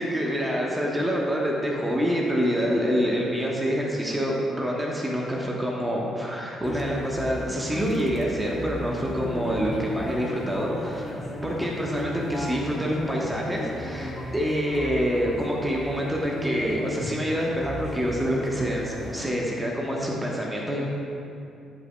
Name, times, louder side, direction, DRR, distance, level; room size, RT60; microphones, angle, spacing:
voice 1, 0.0-11.0 11.4-20.8, equal, 10° right, -3 dB, 1.3 m, -26 dB
sound 1, 6.6-19.3, equal, 25° left, 1.3 m, -36 dB
11.0 x 8.0 x 2.3 m, 2.6 s
figure-of-eight pair, 45°, 0 cm